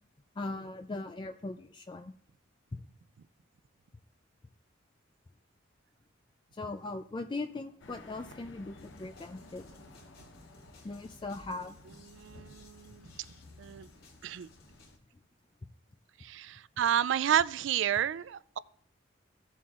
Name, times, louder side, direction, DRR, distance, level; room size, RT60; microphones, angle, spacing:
voice 1, 0.4-2.1 2.7-2.8 6.5-9.7 10.8-11.8, left 2 dB, 25° left, 0.4 m, -39 dB
sound 1, 7.8-15.0, left 2 dB, 65° left, 0.9 m, -54 dB
sound 2, 8.8-15.0, left 2 dB, 50° left, 2.5 m, -60 dB
voice 2, 12.1-13.1 13.6-13.9 14.2-14.5 16.2-18.6, right 9 dB, 65° right, 0.3 m, -30 dB
15.5 x 7.1 x 2.4 m
head